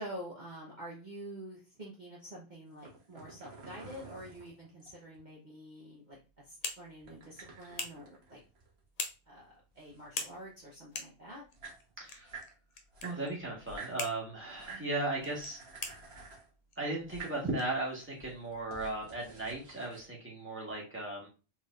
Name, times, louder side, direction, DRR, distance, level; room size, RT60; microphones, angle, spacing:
voice 1, 0.0-6.2 6.4-8.4 9.3-11.4 14.7-14.9, right 1 dB, 40° right, -5 dB, 1.1 m, -47 dB
sound 1, 2.7-5.2 7.0-9.1 9.4-10.6 11.2-11.3 11.4-12.5 12.9-14.0 14.5-14.9 15.2-16.5 17.0-17.4 18.0-20.1, right 4 dB, 55° right, 1.4 m, -50 dB
sound 2, 6.1-18.5, left 3 dB, 45° left, 0.5 m, -46 dB
voice 2, 12.0-12.3 13.0-15.6 16.8-21.3, right 2 dB, 10° right, -3 dB, 1.5 m, -36 dB
4.2 x 3.7 x 2.5 m, 0.32 s
omnidirectional pair, 1.3 m